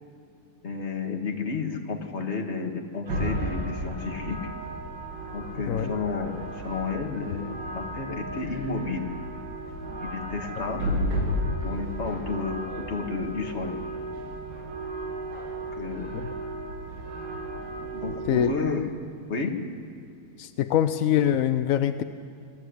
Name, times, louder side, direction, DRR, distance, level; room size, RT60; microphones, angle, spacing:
voice 1, 0.6-4.4 5.3-9.1 10.0-13.8 15.8-16.1 17.9-18.9 19.3-19.6, left 4 dB, 35° left, 2 dB, 2.0 m, -32 dB
sound 1, 3.1-18.5, right 1 dB, 55° right, 2.8 m, -33 dB
voice 2, 20.4-22.0, left 10 dB, 70° left, 10 dB, 0.8 m, -24 dB
24.0 x 13.5 x 9.8 m, 2.5 s
omnidirectional pair, 2.2 m